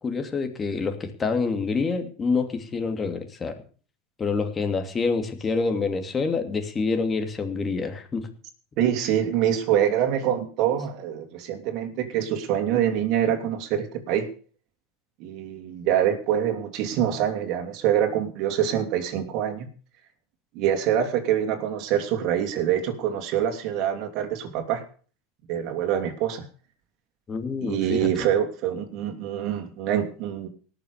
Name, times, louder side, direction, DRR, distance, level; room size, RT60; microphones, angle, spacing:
voice 1, 0.0-3.6 4.2-8.3 27.3-28.1, left 4 dB, 25° left, 6 dB, 2.8 m, -27 dB
voice 2, 8.8-14.3 15.2-19.7 20.5-24.8 25.5-26.4 27.6-30.5, right 10 dB, 55° right, 6 dB, 3.0 m, -25 dB
19.0 x 6.9 x 6.7 m, 0.41 s
supercardioid pair, 110°, 0 cm